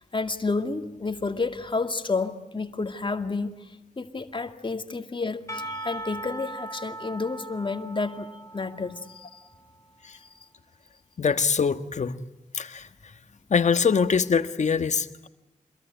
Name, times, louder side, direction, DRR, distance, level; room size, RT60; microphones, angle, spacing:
voice 1, 0.0-3.5 4.0-9.4 10.2-10.3, left 3 dB, 35° left, 2.2 m, -30 dB
Percussion / Church bell, 5.5-9.9, right 2 dB, 20° left, 4.8 m, -39 dB
voice 2, 11.2-12.2 12.5-12.9 13.5-15.3, left 6 dB, 60° left, 1.5 m, -23 dB
27.0 x 22.0 x 9.2 m
cardioid pair, 55°, 14 cm